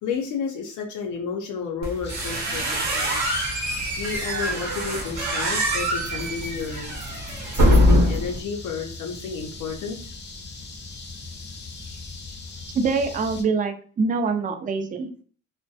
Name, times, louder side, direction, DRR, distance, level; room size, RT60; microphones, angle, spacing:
voice 1, 0.0-3.3 4.0-6.9 7.5-10.1, left 5 dB, 80° left, 1 dB, 0.5 m, -31 dB
sound 1, 1.8-8.4, equal, 65° right, 0.8 m, -23 dB
sound 2, 2.0-13.4, left 3 dB, 35° left, 0.6 m, -40 dB
voice 2, 12.7-15.2, right 4 dB, 30° right, 7 dB, 0.4 m, -25 dB
2.2 x 2.1 x 2.6 m, 0.44 s
cardioid pair, 90°, 30 cm